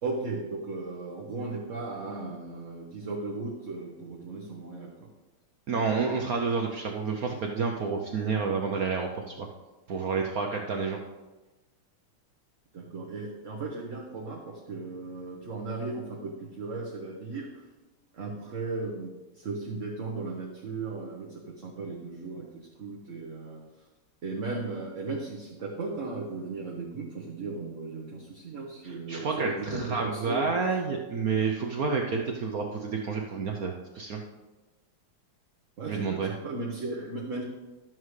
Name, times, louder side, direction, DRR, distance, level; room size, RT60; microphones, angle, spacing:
voice 1, 0.0-5.1 12.7-17.5 18.1-23.6 24.2-30.5 35.8-37.4, right 3 dB, 45° right, -2 dB, 1.1 m, -36 dB
voice 2, 5.7-9.5 9.9-11.0 28.8-34.2 35.9-36.3, right 5 dB, 65° right, 2 dB, 0.9 m, -29 dB
12.5 x 7.4 x 3.2 m, 1.1 s
omnidirectional pair, 2.3 m